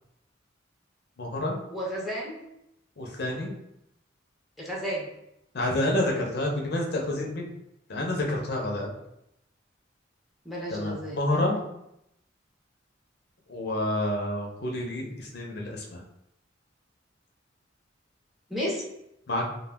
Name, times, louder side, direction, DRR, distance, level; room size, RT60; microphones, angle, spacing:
voice 1, 1.2-1.6 3.0-3.5 5.5-7.5 7.9-8.9 10.7-11.6 13.5-16.0 19.3-19.4, left 1 dB, 55° left, 0 dB, 0.6 m, -28 dB
voice 2, 1.7-2.4 4.6-5.1 10.4-11.2 18.5-18.8, equal, ahead, -4 dB, 0.6 m, -32 dB
2.2 x 2.1 x 3.3 m, 0.80 s
head